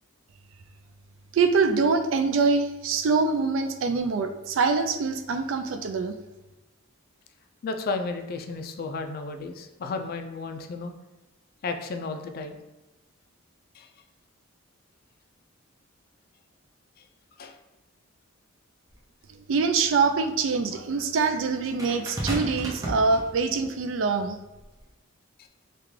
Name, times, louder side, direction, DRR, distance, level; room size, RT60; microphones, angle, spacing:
voice 1, 1.3-6.2 19.5-24.4, right 4 dB, 65° right, 7 dB, 0.3 m, -24 dB
voice 2, 7.6-10.9 11.6-12.6 13.7-13.9 17.4-17.5 25.4-25.5, left 3 dB, 50° left, 6 dB, 0.3 m, -33 dB
sound 1, 18.9-19.0 21.8-23.7 24.6-24.8, right 1 dB, 15° right, 0.5 m, -33 dB
3.6 x 2.3 x 3.1 m, 1.1 s
head